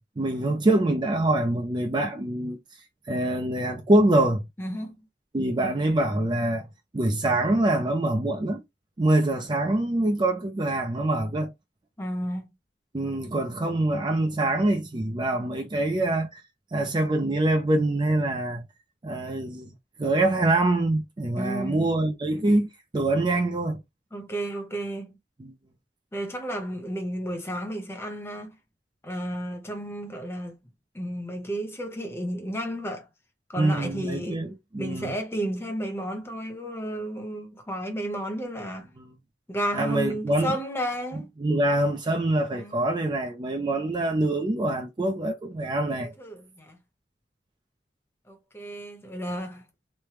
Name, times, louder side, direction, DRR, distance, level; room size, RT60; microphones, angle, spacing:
voice 1, 0.0-2.6 3.1-4.4 5.3-6.7 6.9-8.6 9.0-11.5 12.9-16.4 16.7-18.6 19.0-19.7 20.0-23.8 25.4-25.5 33.6-35.2 39.7-40.6 41.4-46.1, right 1 dB, 25° right, 0.4 m, -25 dB
voice 2, 4.6-5.1 12.0-12.5 21.4-22.0 24.1-25.2 26.1-28.6 29.0-30.6 30.9-33.1 33.5-34.4 34.8-38.9 39.5-41.3 42.5-42.9 46.0-46.8 48.3-49.6, equal, 15° left, 0.8 m, -32 dB
3.2 x 2.1 x 3.0 m
head